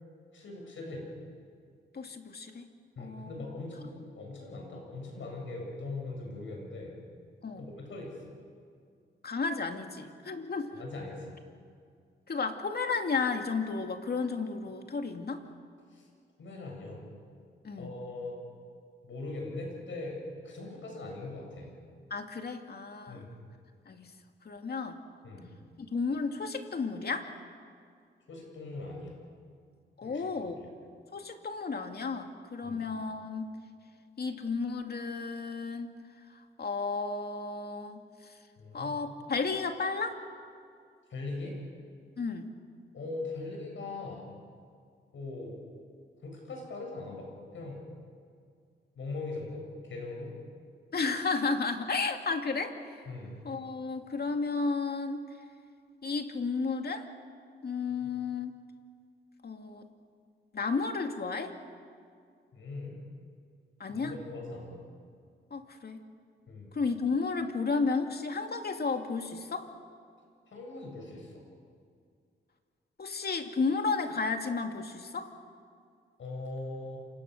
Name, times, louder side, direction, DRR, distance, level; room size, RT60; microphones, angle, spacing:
voice 1, 0.3-1.1 3.0-7.0 7.6-8.4 10.7-11.3 15.9-16.1 16.4-17.1 17.8-18.4 19.0-21.7 23.1-23.4 25.2-25.5 28.3-29.1 30.0-30.7 32.6-32.8 38.6-38.9 41.1-41.6 42.9-44.4 45.1-45.6 46.2-47.8 48.9-50.3 53.1-53.4 57.9-58.1 62.5-63.0 63.9-64.8 66.5-66.7 70.5-71.4 76.2-77.0, left 2 dB, 75° left, 1 dB, 7.8 m, -41 dB
voice 2, 1.9-2.7 3.0-3.4 7.4-7.7 9.2-10.8 12.3-15.4 17.6-18.0 22.1-23.2 23.9-24.1 24.4-25.0 25.8-27.3 30.0-30.6 31.1-33.5 34.2-36.0 36.6-38.0 38.7-40.2 42.2-42.5 50.9-53.0 53.4-55.2 56.0-57.0 57.6-58.6 59.4-59.9 60.5-61.6 63.8-64.1 65.5-66.0 66.7-69.7 73.0-75.3, left 4 dB, 55° left, 5 dB, 2.5 m, -33 dB
28.0 x 25.0 x 6.7 m, 2.2 s
cardioid pair, 75°, 20 cm